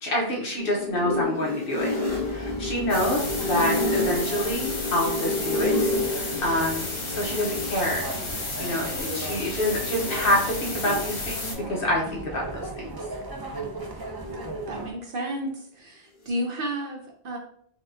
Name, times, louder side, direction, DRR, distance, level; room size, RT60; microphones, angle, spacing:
voice 1, 0.0-1.9 2.3-8.1 8.6-12.8, left 1 dB, 55° left, -2 dB, 1.0 m, -27 dB
sound 1, 0.6-7.9 8.8-10.3 10.7-11.4 13.8-14.6, left 2 dB, 35° left, 1.2 m, -30 dB
sound 2, 2.0-14.9, right 2 dB, 40° right, 0.3 m, -38 dB
sound 3, 2.9-11.5, left 3 dB, 90° left, 1.3 m, -33 dB
voice 2, 14.7-17.4, right 1 dB, 60° right, 0 dB, 0.7 m, -32 dB
4.2 x 2.3 x 2.6 m, 0.62 s
omnidirectional pair, 1.2 m